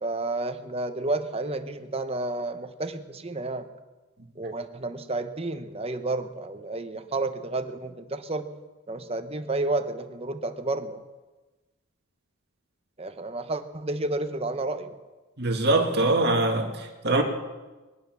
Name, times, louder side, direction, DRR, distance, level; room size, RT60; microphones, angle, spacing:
voice 1, 0.0-3.7 4.4-8.5 8.9-11.0 13.0-15.0, right 2 dB, 25° right, 0.9 m, -31 dB
voice 2, 15.4-17.2, right 2 dB, 50° right, 2.1 m, -23 dB
21.5 x 10.5 x 6.1 m
head